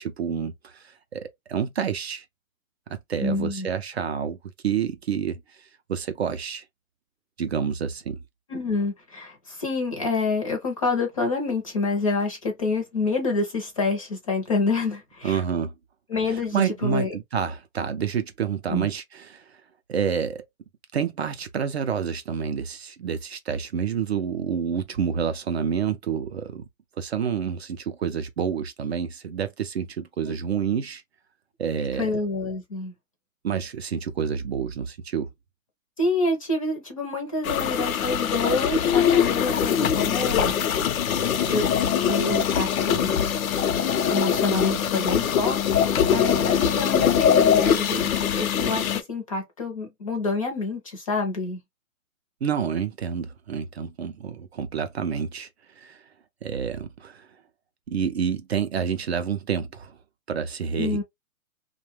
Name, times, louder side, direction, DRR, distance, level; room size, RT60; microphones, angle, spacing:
voice 1, 0.0-2.2 2.9-4.4 4.6-6.6 7.4-8.2 15.2-15.7 16.3-19.6 19.9-20.4 20.9-26.6 27.0-31.0 31.6-32.1 33.4-35.3 52.4-55.5 55.8-56.0 56.4-57.3 57.9-60.0 60.3-61.0, right 7 dB, 50° right, 0.4 m, -28 dB
voice 2, 3.2-3.7 8.5-15.4 16.1-17.1 18.7-18.9 30.3-30.4 32.0-32.9 36.0-40.5 41.2-41.8 42.1-43.1 44.1-51.6 60.8-61.0, left 3 dB, 25° left, 0.5 m, -27 dB
sound 1, 37.4-49.0, left 8 dB, 80° left, 0.7 m, -22 dB
2.7 x 2.2 x 3.1 m
hypercardioid pair, 160°, 42 cm